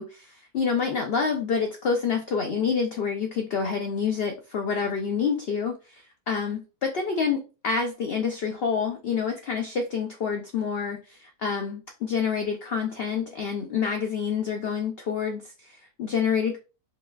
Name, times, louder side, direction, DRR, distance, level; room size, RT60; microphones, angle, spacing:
voice 1, 0.0-16.6, left 6 dB, 75° left, 4 dB, 0.5 m, -28 dB
4.9 x 2.2 x 2.3 m, 0.31 s
omnidirectional pair, 1.6 m